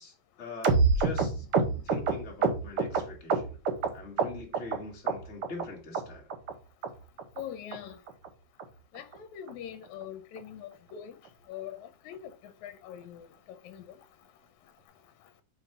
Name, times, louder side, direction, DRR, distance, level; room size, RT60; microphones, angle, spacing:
voice 1, 0.0-1.4 1.8-3.5 3.9-6.3, left 3 dB, 25° left, 2.0 m, -43 dB
sound 1, 0.6-3.9 4.2-4.8 5.1-5.6 5.9-6.0 6.3-6.5 6.8-6.9 7.2-7.4 7.7-7.8 8.1-8.3 8.6-8.7 8.9-9.1 9.5-9.6 9.8-10.0 10.4-10.5, right 4 dB, 50° right, 1.9 m, -27 dB
voice 2, 7.4-8.0 8.9-11.1 11.5-11.8 12.1-12.2 12.6-13.2 13.7-13.8, left 10 dB, 80° left, 2.1 m, -42 dB
6.4 x 4.1 x 5.9 m
omnidirectional pair, 3.4 m